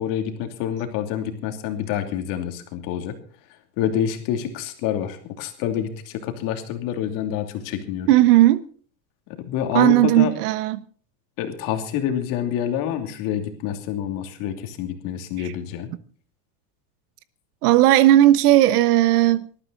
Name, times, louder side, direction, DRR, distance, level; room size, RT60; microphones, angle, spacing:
voice 1, 0.0-3.2 3.8-8.1 9.3-10.3 11.4-15.9, left 9 dB, 40° left, 2.8 m, -27 dB
voice 2, 8.1-8.6 9.7-10.8 17.6-19.5, right 14 dB, 65° right, 1.3 m, -16 dB
19.5 x 13.5 x 4.1 m
supercardioid pair, 175°, 50 cm